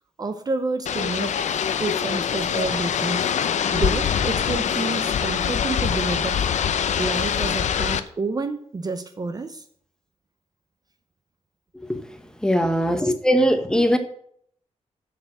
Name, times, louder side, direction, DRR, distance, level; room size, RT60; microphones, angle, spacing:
voice 1, 0.2-1.4 1.8-3.3 3.7-6.4 7.0-9.6 12.6-12.8, right 3 dB, 35° right, 0.6 m, -29 dB
sound 1, 0.9-8.0, left 8 dB, 90° left, 0.7 m, -24 dB
voice 2, 12.4-14.0, equal, 5° left, 1.0 m, -20 dB
7.3 x 6.7 x 7.3 m
wide cardioid pair, 155°, 12 cm